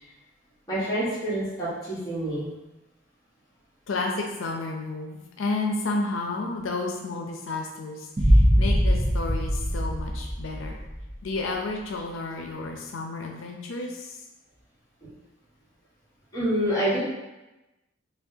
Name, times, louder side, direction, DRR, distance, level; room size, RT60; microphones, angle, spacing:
voice 1, 0.7-2.5 16.3-17.0, right 1 dB, 20° left, -10 dB, 1.4 m, -27 dB
voice 2, 3.9-10.8 11.2-14.2, left 3 dB, 85° left, 1 dB, 0.5 m, -31 dB
sound 1, 8.2-11.1, equal, 25° right, 0.5 m, -22 dB
5.7 x 2.2 x 2.7 m, 1.0 s
head